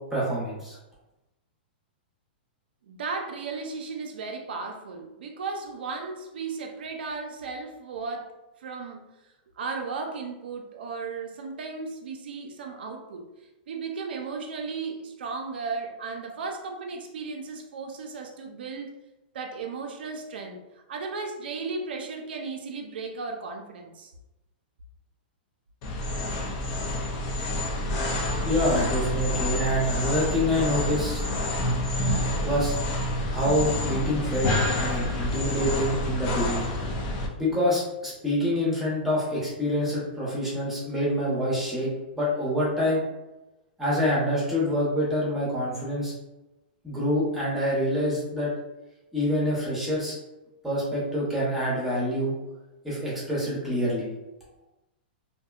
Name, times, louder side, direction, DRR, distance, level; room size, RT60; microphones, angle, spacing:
voice 1, 0.1-0.8 28.4-31.2 32.4-32.7 33.3-34.5 34.8-36.7 37.4-41.9 42.1-43.0 43.8-46.1 46.8-48.5 49.1-50.1 50.6-52.3 52.8-54.1, equal, 5° right, -7 dB, 0.9 m, -26 dB
voice 2, 2.8-9.1 9.6-13.3 13.7-18.9 19.3-24.1, right 4 dB, 80° right, 2 dB, 0.4 m, -35 dB
sound 1, 25.8-37.3, left 1 dB, 45° left, 0.5 m, -28 dB
2.6 x 2.1 x 2.4 m, 0.99 s
hypercardioid pair, 145°, 5 cm